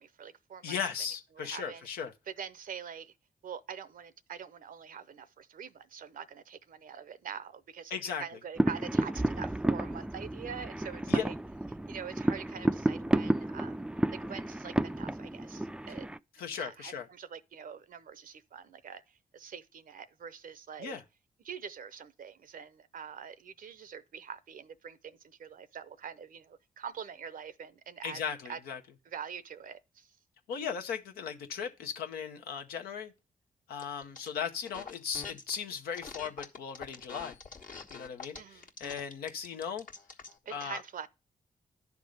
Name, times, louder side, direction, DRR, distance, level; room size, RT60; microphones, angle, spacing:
voice 1, 0.0-0.8 1.4-1.9 2.3-3.1 3.4-11.3 11.9-13.9 14.2-16.1 16.5-21.0 21.4-28.2 28.5-28.6 29.1-30.2 38.3-38.7 40.5-41.1, right 7 dB, 65° right, 0.6 m, -44 dB
voice 2, 0.6-2.1 7.9-8.2 11.1-11.2 16.4-17.1 20.8-21.0 28.0-28.8 30.5-33.1 33.7-37.4 37.9-39.9 40.5-40.8, left 7 dB, 90° left, 0.8 m, -37 dB
sound 1, 8.6-16.2, right 1 dB, 5° right, 0.4 m, -31 dB
sound 2, 33.8-34.3 34.7-35.6 35.9-40.4, left 5 dB, 60° left, 1.3 m, -45 dB
10.5 x 3.6 x 6.4 m
supercardioid pair, 45°, 15 cm